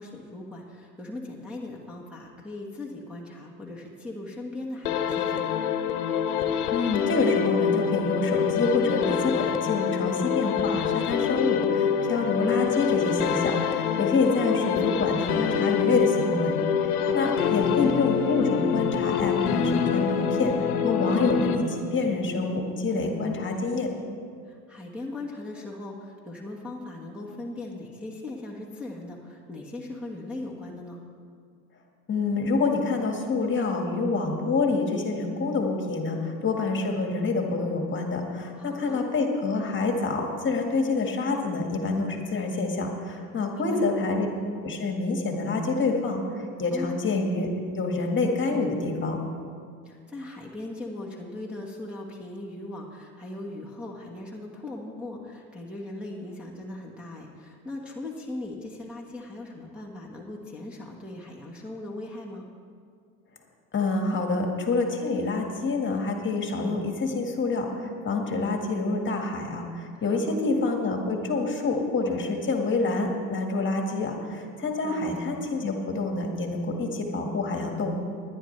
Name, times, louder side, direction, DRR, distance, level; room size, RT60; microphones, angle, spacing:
voice 1, 0.0-5.6 17.0-17.4 24.4-31.0 38.6-39.0 43.5-43.9 46.7-47.0 49.8-62.5 70.0-70.3 74.8-75.2, left 2 dB, ahead, -4 dB, 1.5 m, -39 dB
sound 1, 4.9-22.1, left 7 dB, 80° left, 1.1 m, -26 dB
voice 2, 6.7-16.6 16.8-20.5 20.8-23.9 32.1-44.3 44.6-47.5 47.8-49.2 63.7-77.9, left 3 dB, 25° left, 2 dB, 1.9 m, -27 dB
19.0 x 11.0 x 3.3 m, 2.2 s
hypercardioid pair, 90°, 44 cm